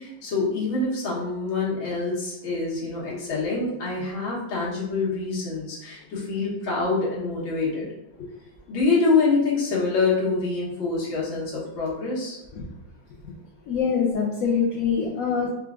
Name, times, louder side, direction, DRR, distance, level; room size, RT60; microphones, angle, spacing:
voice 1, 0.0-7.9 8.2-8.3 8.7-12.4, left 4 dB, 90° left, -5 dB, 2.0 m, -25 dB
voice 2, 13.7-15.5, left 6 dB, 70° left, -3 dB, 0.8 m, -24 dB
4.4 x 2.4 x 3.6 m, 0.94 s
omnidirectional pair, 2.1 m